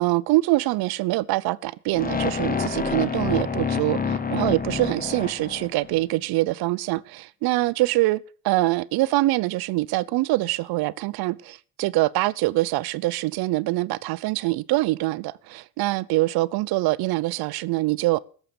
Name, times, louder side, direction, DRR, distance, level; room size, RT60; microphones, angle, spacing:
voice 1, 0.0-8.2 8.4-18.2, right 19 dB, 65° right, 0.7 m, -24 dB
sound 1, 1.9-6.0, left 5 dB, 20° left, 1.3 m, -27 dB
17.0 x 6.9 x 6.9 m
supercardioid pair, 80°, 39 cm